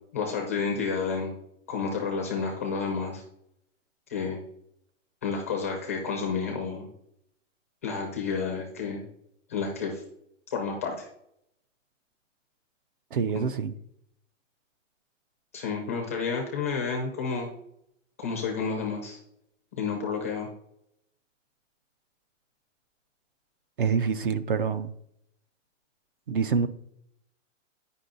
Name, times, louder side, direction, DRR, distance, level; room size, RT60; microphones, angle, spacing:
voice 1, 0.1-1.3 1.7-3.2 4.1-4.4 5.2-6.9 7.8-9.0 9.5-10.0 10.5-11.1 13.3-13.4 15.5-17.5 18.2-19.2 19.8-20.5, left 5 dB, 10° left, 1 dB, 0.4 m, -30 dB
voice 2, 13.1-13.7 23.8-24.9 26.3-26.7, right 6 dB, 45° right, 14 dB, 0.5 m, -26 dB
9.9 x 5.4 x 3.9 m, 0.75 s
hypercardioid pair, 175°, 38 cm